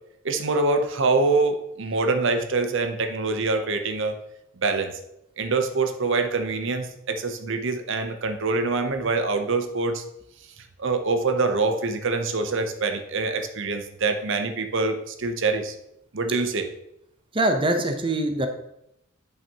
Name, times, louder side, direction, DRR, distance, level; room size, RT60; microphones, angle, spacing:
voice 1, 0.2-4.2 4.6-4.9 5.4-10.0 10.8-15.7 16.1-16.7, right 3 dB, 60° right, 7 dB, 0.8 m, -25 dB
voice 2, 17.3-18.5, right 1 dB, 25° right, 6 dB, 0.7 m, -23 dB
10.5 x 5.6 x 2.9 m, 0.81 s
head